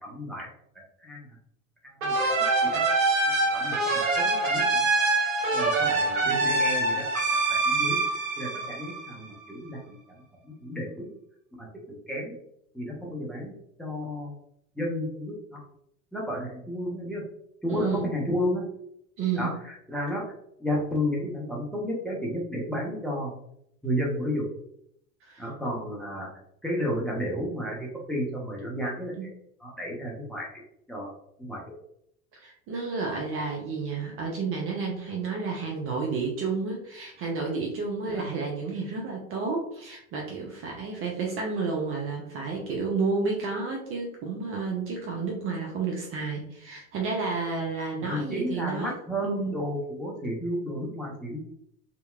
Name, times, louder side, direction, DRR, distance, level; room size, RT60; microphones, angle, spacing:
voice 1, 0.0-0.5 1.0-1.3 2.0-2.8 3.5-4.8 5.2-7.1 7.5-8.0 8.4-10.2 10.4-11.1 11.6-12.3 12.7-14.3 14.8-15.6 16.1-17.2 17.6-18.6 19.3-20.2 20.6-23.3 23.8-24.4 25.4-26.3 26.6-29.1 29.6-30.6 30.9-31.1 31.4-31.7 38.1-38.3 48.1-51.4, equal, ahead, -4 dB, 0.7 m, -32 dB
sound 1, 2.0-9.4, right 3 dB, 70° right, 0.7 m, -25 dB
voice 2, 17.7-18.1 19.2-19.5 25.2-25.5 29.2-29.3 32.3-48.9 49.2-49.5, right 4 dB, 30° right, 0 dB, 0.5 m, -31 dB
2.8 x 2.1 x 2.3 m, 0.72 s
figure-of-eight pair, 75°, 41 cm